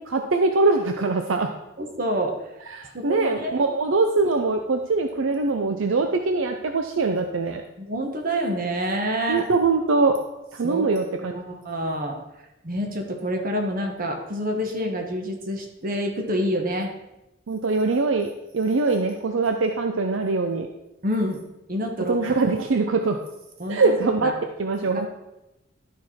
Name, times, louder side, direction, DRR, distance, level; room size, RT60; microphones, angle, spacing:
voice 1, 0.0-1.5 2.7-7.6 9.3-10.2 10.5-11.4 17.5-20.7 22.1-23.2 23.7-24.3 24.6-25.1, right 3 dB, 70° right, 5 dB, 0.6 m, -23 dB
voice 2, 1.8-2.4 2.9-3.6 7.8-9.5 10.6-10.9 11.3-12.2 12.6-16.9 21.0-21.4 21.7-22.2 23.6-24.3 24.8-25.1, equal, 45° right, 3 dB, 1.2 m, -27 dB
11.5 x 4.6 x 4.3 m, 0.94 s
head